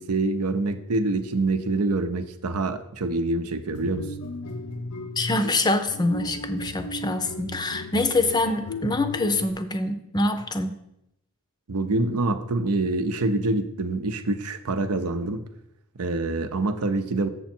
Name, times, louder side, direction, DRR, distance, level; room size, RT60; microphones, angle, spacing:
voice 1, 0.0-4.1 11.7-15.4 16.0-17.3, right 2 dB, 90° right, 8 dB, 0.7 m, -26 dB
sound 1, 3.7-9.5, left 2 dB, 90° left, 0.6 m, -35 dB
voice 2, 5.2-10.8, left 2 dB, 20° left, 9 dB, 0.5 m, -25 dB
7.0 x 7.0 x 4.4 m, 0.84 s
head